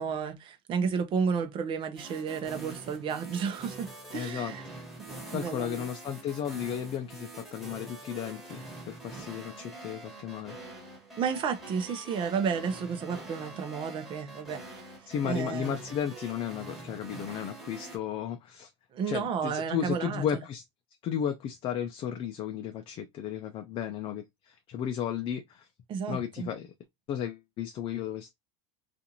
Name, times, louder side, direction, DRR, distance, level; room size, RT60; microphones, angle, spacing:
voice 1, 0.0-4.6 5.1-5.9 11.2-14.9 15.2-15.8 18.9-20.4 25.9-26.5, right 6 dB, 35° right, 0.7 m, -32 dB
sound 1, 2.0-18.0, right 2 dB, ahead, 1.5 m, -45 dB
voice 2, 4.1-4.5 5.3-10.6 15.1-18.7 19.1-20.6 21.0-25.7 26.1-26.7 27.1-28.3, left 9 dB, 40° left, 0.5 m, -34 dB
2.5 x 2.5 x 2.8 m
supercardioid pair, 120°, 14 cm